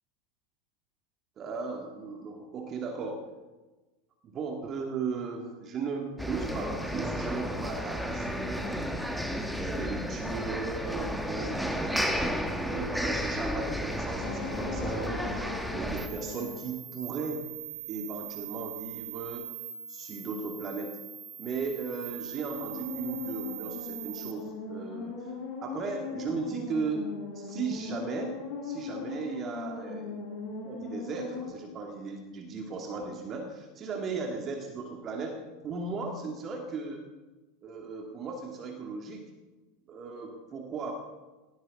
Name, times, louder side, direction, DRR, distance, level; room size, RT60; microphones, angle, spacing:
voice 1, 1.4-3.3 4.2-9.0 9.6-12.3 12.6-17.5 17.9-19.5 19.9-21.0 21.4-25.3 25.6-27.1 27.3-28.4 28.6-30.3 30.6-37.0 37.6-39.3 39.9-40.9, right 4 dB, 30° right, 2 dB, 2.4 m, -36 dB
sound 1, 6.2-16.1, equal, ahead, 1.6 m, -32 dB
sound 2, 14.2-16.7 22.3-31.5, left 4 dB, 45° left, 5.4 m, -39 dB
sound 3, 16.0-24.3, right 11 dB, 60° right, 2.9 m, -42 dB
19.0 x 18.0 x 3.9 m, 1.2 s
figure-of-eight pair, 85°, 0 cm